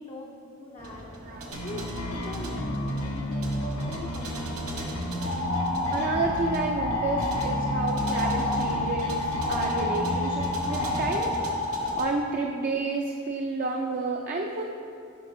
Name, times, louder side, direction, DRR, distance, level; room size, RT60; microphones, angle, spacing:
voice 1, 0.0-1.1 1.6-4.6, left 1 dB, 30° left, -3 dB, 0.4 m, -41 dB
sound 1, 0.8-12.1, right 1 dB, 90° right, 0.9 m, -40 dB
sound 2, 1.5-11.1, left 1 dB, 85° left, 0.9 m, -32 dB
sound 3, 5.2-12.0, left 2 dB, 50° left, 0.8 m, -29 dB
voice 2, 5.9-11.4 11.6-14.6, right 3 dB, 40° right, 1 dB, 0.3 m, -30 dB
9.1 x 6.0 x 2.6 m, 2.6 s
head